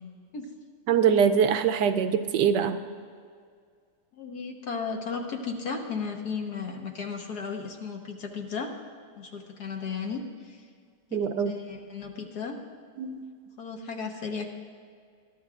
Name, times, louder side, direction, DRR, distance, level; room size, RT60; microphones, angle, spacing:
voice 1, 0.9-2.8 11.1-11.5 13.0-13.2, right 7 dB, 90° right, 9 dB, 1.3 m, -23 dB
voice 2, 4.1-8.7 9.2-10.6 11.1-12.6 13.6-14.5, left 5 dB, 70° left, 2 dB, 1.7 m, -35 dB
21.0 x 12.0 x 2.5 m, 2.1 s
omnidirectional pair, 1.8 m